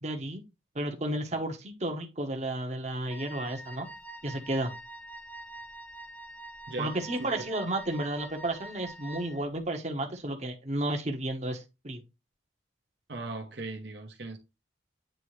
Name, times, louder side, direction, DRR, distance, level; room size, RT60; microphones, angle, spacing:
voice 1, 0.0-0.4 0.7-3.9 4.2-4.7 6.8-12.0, right 1 dB, 35° right, 1.0 m, -32 dB
Wind instrument woodwind instrument, 3.1-9.5, right 1 dB, 10° left, 0.7 m, -45 dB
voice 2, 6.7-7.5 13.1-14.4, right 2 dB, 60° right, 0.9 m, -39 dB
9.0 x 3.4 x 3.1 m
head